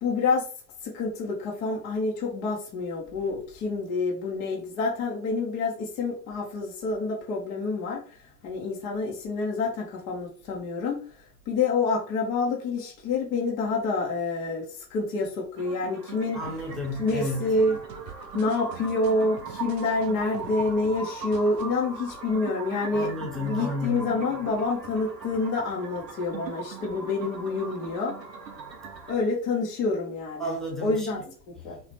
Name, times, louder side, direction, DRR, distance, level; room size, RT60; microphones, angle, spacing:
voice 1, 0.0-0.5 0.8-11.0 11.5-16.4 17.0-17.8 18.3-23.1 23.3-28.1 29.1-30.5 30.8-31.2 31.6-31.8, left 3 dB, 20° left, 0.3 m, -27 dB
sound 1, 15.6-29.1, right 5 dB, 85° right, 0.7 m, -40 dB
voice 2, 16.3-17.6 22.9-24.1 30.4-31.9, left 1 dB, ahead, 0.7 m, -33 dB
sound 2, 16.4-20.9 21.2-21.6, right 8 dB, 50° right, 0.8 m, -47 dB
3.1 x 2.1 x 2.8 m
figure-of-eight pair, 85°, 48 cm